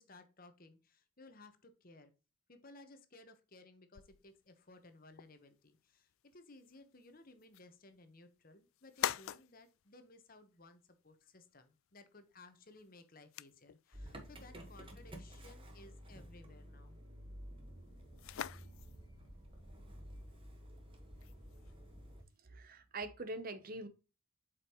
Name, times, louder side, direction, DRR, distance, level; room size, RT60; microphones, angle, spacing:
voice 1, 0.0-2.1 2.5-17.0, left 2 dB, 40° left, 1.1 m, -59 dB
sound 1, 3.9-22.4, left 11 dB, 70° left, 0.3 m, -49 dB
Motor vehicle (road) / Engine starting, 13.9-22.2, equal, 25° right, 1.3 m, -52 dB
voice 2, 22.4-23.9, right 2 dB, 40° right, 0.8 m, -43 dB
8.3 x 5.1 x 3.0 m
head